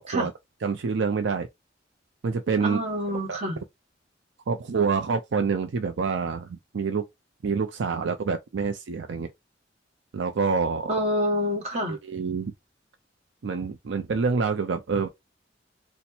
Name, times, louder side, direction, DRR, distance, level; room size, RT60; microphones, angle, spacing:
voice 1, 0.6-1.5 2.2-2.8 3.3-3.4 4.5-7.1 7.4-9.3 10.1-10.9 11.9-12.5 13.4-15.1, right 5 dB, 70° right, 0.5 m, -27 dB
voice 2, 2.6-3.6 10.9-12.0, equal, 35° right, 1.3 m, -27 dB
4.3 x 2.1 x 2.6 m
head